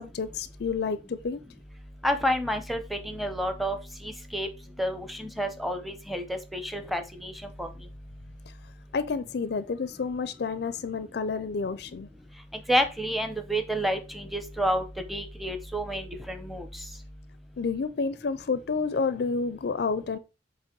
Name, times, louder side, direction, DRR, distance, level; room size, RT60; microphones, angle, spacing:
voice 1, 0.0-1.4 8.9-12.1 17.6-20.2, left 4 dB, 60° left, 0.4 m, -30 dB
voice 2, 2.0-3.8 4.0-4.5 4.8-7.3 7.6-7.7 12.7-14.8 15.1-16.7, equal, ahead, 0.8 m, -29 dB
7.5 x 3.0 x 5.2 m
head